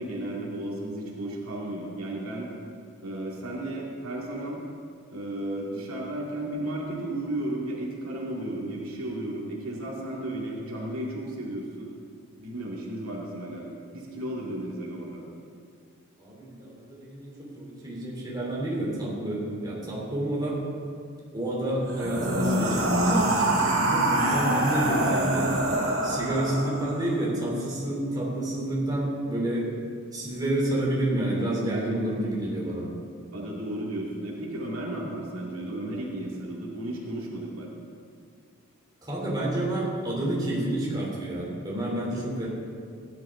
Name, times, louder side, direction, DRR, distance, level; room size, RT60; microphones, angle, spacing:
voice 1, 0.0-2.5 3.0-4.6 5.1-11.9 12.4-15.2 33.3-37.7, right 1 dB, 90° right, -3 dB, 2.2 m, -34 dB
voice 2, 16.2-20.6 21.3-25.5 26.0-29.7 30.1-32.9 39.0-42.5, right 1 dB, 20° right, -5 dB, 3.1 m, -29 dB
sound 1, 21.9-27.1, right 1 dB, 70° right, 2.7 m, -25 dB
16.0 x 10.5 x 3.8 m, 2.3 s
head